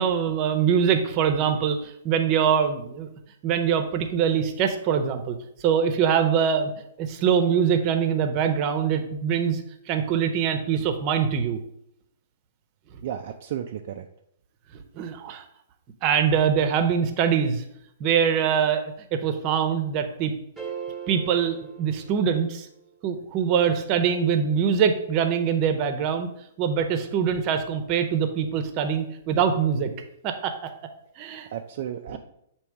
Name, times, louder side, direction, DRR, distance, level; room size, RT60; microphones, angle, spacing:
voice 1, 0.0-3.1 3.4-5.3 5.6-6.7 7.0-9.6 9.9-11.6 14.7-15.4 16.0-17.6 18.0-20.3 21.1-22.7 23.0-26.3 26.6-29.9 30.2-30.7 31.2-31.5 32.1-32.2, right 7 dB, 35° right, 7 dB, 0.8 m, -23 dB
voice 2, 13.0-14.1 31.5-32.2, right 10 dB, 55° right, 4 dB, 0.4 m, -33 dB
sound 1, 20.6-22.8, right 7 dB, 10° right, 1.2 m, -39 dB
7.1 x 3.0 x 4.6 m, 0.74 s
hypercardioid pair, 120°, 0 cm